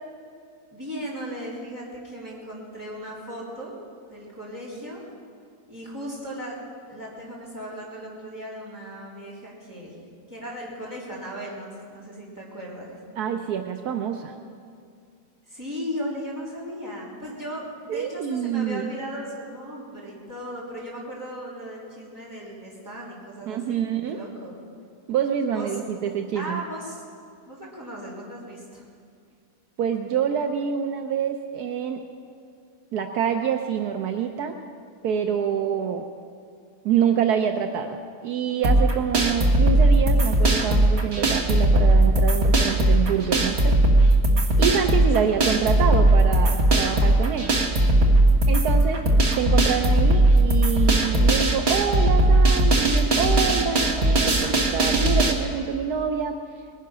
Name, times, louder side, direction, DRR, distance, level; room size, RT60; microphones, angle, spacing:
voice 1, 0.7-3.7 4.0-5.1 5.7-6.6 6.9-10.0 10.3-13.0 15.5-24.6 25.5-25.7 26.3-27.0 27.5-28.9 45.2-45.5, equal, 10° right, -6 dB, 3.6 m, -37 dB
voice 2, 13.2-14.3 17.9-18.9 23.5-24.2 25.1-26.6 29.8-32.0 32.9-34.6 35.0-36.0 36.8-43.8 44.6-47.5 48.5-49.0 49.3-56.4, right 7 dB, 75° right, 5 dB, 1.3 m, -26 dB
sound 1, 38.6-55.3, right 1 dB, 45° right, 1.5 m, -19 dB
20.0 x 10.5 x 6.1 m, 2.3 s
omnidirectional pair, 1.7 m